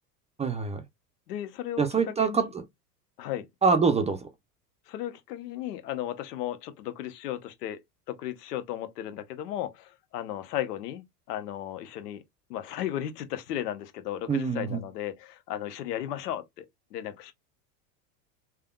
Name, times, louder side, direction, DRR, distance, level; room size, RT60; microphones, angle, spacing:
voice 1, 0.4-0.8 1.8-2.6 3.6-4.3 14.3-14.8, right 5 dB, 15° right, 0.5 m, -25 dB
voice 2, 1.3-1.8 2.2-2.5 3.2-3.4 4.9-7.8 8.1-12.2 12.5-16.7 16.9-17.3, left 12 dB, 75° left, 0.9 m, -35 dB
3.4 x 2.3 x 2.2 m
hypercardioid pair, 90°, 47 cm